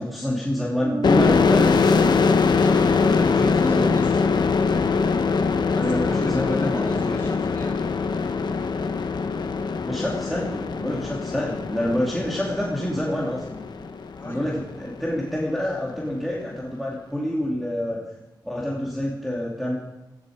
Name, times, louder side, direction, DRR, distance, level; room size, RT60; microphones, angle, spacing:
voice 1, 0.0-2.1 3.3-4.0 5.8-7.2 9.9-13.6 14.2-18.0 18.4-19.8, left 1 dB, ahead, -4 dB, 2.3 m, -27 dB
sound 1, 0.8-4.1, right 4 dB, 90° right, 4.3 m, -34 dB
sound 2, 1.0-14.5, left 4 dB, 65° left, 1.0 m, -22 dB
voice 2, 2.6-4.2 5.7-7.9 14.1-14.5, left 1 dB, 30° left, -1 dB, 6.2 m, -36 dB
17.0 x 14.5 x 4.9 m, 1.0 s
wide cardioid pair, 120°, 8 cm